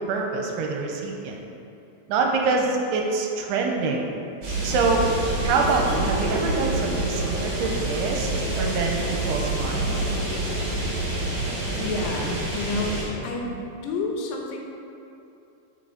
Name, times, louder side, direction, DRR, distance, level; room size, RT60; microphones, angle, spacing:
voice 1, 0.1-1.4 2.1-4.1 4.6-5.0 5.4-10.0, right 4 dB, 90° right, 1 dB, 2.7 m, -25 dB
sound 1, 4.4-13.1, right 2 dB, 55° right, 2.9 m, -27 dB
voice 2, 11.8-14.6, left 3 dB, 85° left, 1 dB, 3.1 m, -30 dB
7.6 x 6.4 x 3.9 m, 2.6 s
omnidirectional pair, 4.8 m